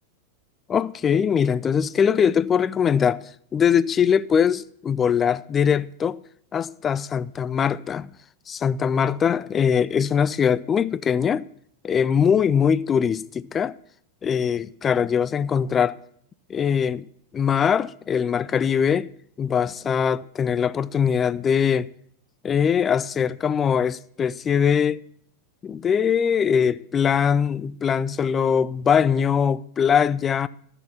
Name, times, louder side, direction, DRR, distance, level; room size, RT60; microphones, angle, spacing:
voice 1, 0.7-3.2 3.5-6.2 6.5-8.1 8.5-11.4 11.8-13.7 14.2-16.0 16.5-17.1 17.3-19.1 19.4-21.9 22.4-25.0 25.6-30.5, left 7 dB, 20° left, 0.3 m, -21 dB
12.5 x 6.8 x 5.7 m
figure-of-eight pair, 90°, 0 cm